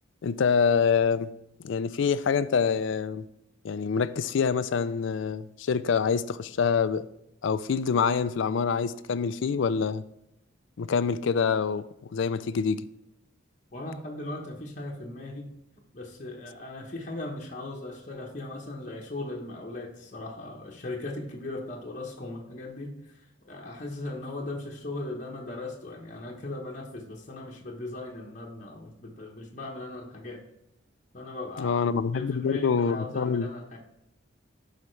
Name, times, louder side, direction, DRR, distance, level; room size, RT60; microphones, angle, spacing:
voice 1, 0.2-1.3 1.6-3.2 3.6-7.1 7.4-10.0 10.8-11.8 12.1-12.8 31.6-33.5, left 6 dB, 70° left, 14 dB, 0.4 m, -26 dB
voice 2, 13.7-15.5 15.9-30.4 31.1-31.8 32.1-33.8, left 2 dB, 40° left, -1 dB, 1.0 m, -38 dB
11.0 x 4.9 x 3.2 m, 0.84 s
head